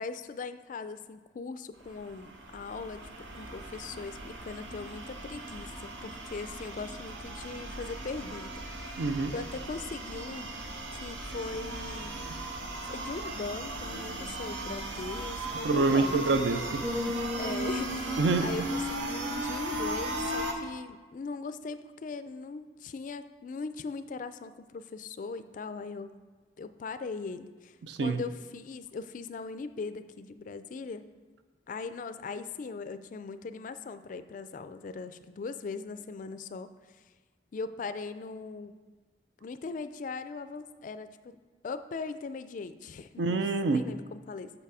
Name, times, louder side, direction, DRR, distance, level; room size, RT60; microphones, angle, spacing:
voice 1, 0.0-3.0 3.3-9.0 9.3-10.5 11.0-12.1 12.8-16.2 17.4-26.2 26.6-31.0 31.7-36.7 37.5-38.8 39.4-41.4 41.6-43.4 43.7-44.5, left 4 dB, 45° left, 11 dB, 0.3 m, -40 dB
sound 1, 1.8-20.5, right 1 dB, 90° right, 0.9 m, -37 dB
voice 2, 9.0-9.3 15.6-17.2 18.2-18.5 27.8-28.2 43.2-43.9, right 3 dB, 70° right, 10 dB, 0.5 m, -27 dB
sound 2, 16.8-20.8 21.2-21.5, left 2 dB, 10° right, 0.7 m, -40 dB
7.0 x 5.7 x 4.8 m, 1.3 s
head